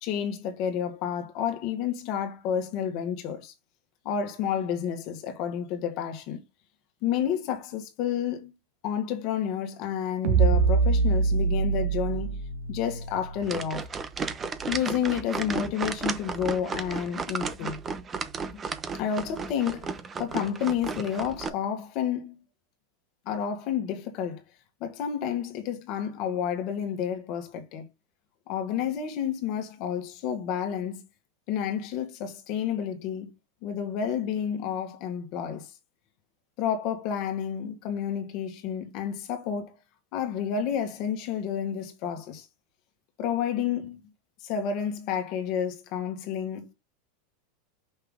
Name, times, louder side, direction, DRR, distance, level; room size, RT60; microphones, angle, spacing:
voice 1, 0.0-3.5 4.0-6.4 7.0-8.5 8.8-12.4 12.7-13.9 14.7-17.8 18.5-18.6 18.9-19.9 20.2-22.4 23.2-24.4 24.8-27.9 28.5-31.0 31.5-33.3 33.6-35.7 36.6-39.7 40.1-42.5 43.2-44.0 44.4-46.7, left 8 dB, 50° left, 1.7 m, -30 dB
sound 1, 10.2-13.7, right 5 dB, 60° right, 1.5 m, -24 dB
sound 2, 13.4-21.5, right 5 dB, 25° right, 0.8 m, -34 dB
5.6 x 5.6 x 3.7 m
supercardioid pair, 125°, 0 cm